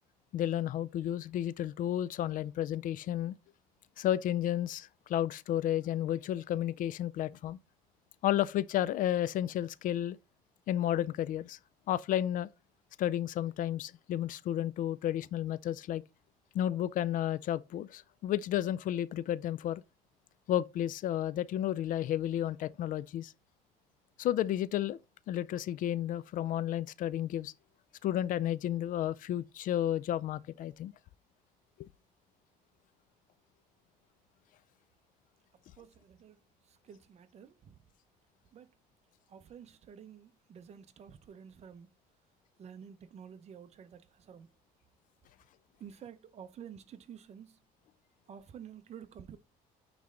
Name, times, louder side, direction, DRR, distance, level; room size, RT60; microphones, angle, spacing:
voice 1, 0.3-3.4 4.0-7.6 8.2-10.2 10.7-11.6 11.9-12.5 13.0-16.0 16.5-19.8 20.5-23.3 24.2-25.0 25.3-27.5 28.0-30.9, left 12 dB, 55° left, 0.4 m, -32 dB
voice 2, 35.8-36.4 36.7-37.8 38.5-38.7 39.3-41.9 42.6-44.5 45.8-47.6 48.3-49.4, right 8 dB, 40° right, 0.8 m, -50 dB
9.3 x 3.2 x 3.8 m
cardioid pair, 120°, 16 cm